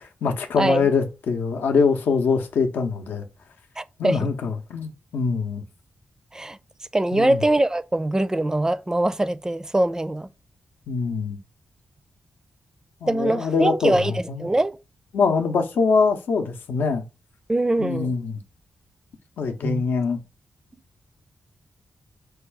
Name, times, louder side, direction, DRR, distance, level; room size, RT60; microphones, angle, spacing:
voice 1, 0.0-3.2 4.0-5.6 7.1-7.4 10.9-11.4 13.0-14.5 15.1-17.0 17.8-18.4 19.4-20.2, left 5 dB, 85° left, 0.7 m, -23 dB
voice 2, 0.6-0.9 3.8-4.3 6.3-6.6 6.9-10.3 13.1-14.8 17.5-18.1 19.6-19.8, right 1 dB, 20° right, 0.4 m, -23 dB
4.6 x 2.3 x 4.6 m
cardioid pair, 55°, 3 cm